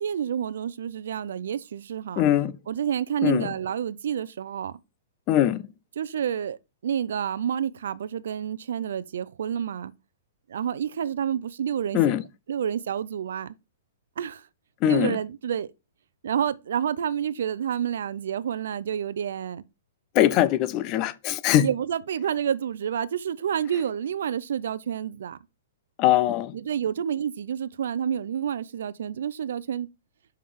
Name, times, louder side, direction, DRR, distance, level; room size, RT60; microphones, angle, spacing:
voice 1, 0.0-2.2 2.7-4.8 6.0-6.6 6.8-9.9 10.5-12.0 12.5-13.5 14.2-14.5 14.8-15.7 16.2-19.6 21.6-25.4 26.5-29.9, right 8 dB, 65° right, 0.5 m, -29 dB
voice 2, 2.2-2.5 3.2-3.5 5.3-5.6 11.9-12.2 14.8-15.2 20.1-21.7 26.0-26.5, left 12 dB, 25° left, 0.4 m, -21 dB
5.8 x 5.7 x 4.7 m
hypercardioid pair, 170°, 0 cm